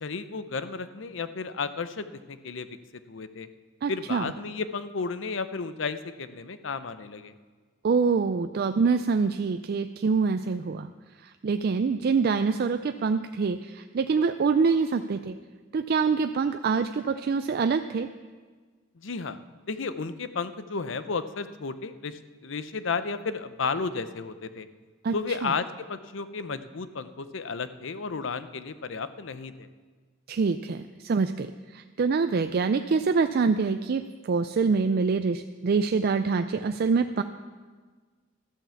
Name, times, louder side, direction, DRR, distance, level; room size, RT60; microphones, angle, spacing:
voice 1, 0.0-2.7 3.1-3.5 3.9-7.3 19.0-19.4 19.7-24.7 25.1-29.7, left 4 dB, 70° left, 12 dB, 0.7 m, -33 dB
voice 2, 3.8-4.3 7.8-10.9 11.2-15.4 15.7-18.1 25.0-25.5 30.3-37.2, right 5 dB, 50° right, 9 dB, 0.4 m, -25 dB
13.0 x 9.0 x 7.1 m, 1.5 s
head